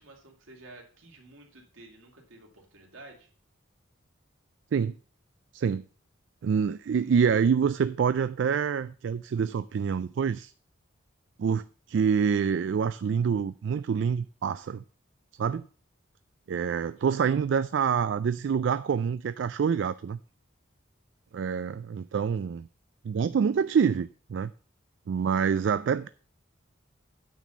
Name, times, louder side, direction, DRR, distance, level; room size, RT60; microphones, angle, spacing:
voice 1, 0.0-3.3 17.0-17.4, right 2 dB, 80° right, 2.5 m, -51 dB
voice 2, 5.5-5.8 6.4-10.5 11.4-14.8 15.4-15.6 16.5-20.2 21.3-22.7 23.0-24.5 25.1-26.1, right 6 dB, 60° right, 0.3 m, -26 dB
9.2 x 4.3 x 6.9 m
head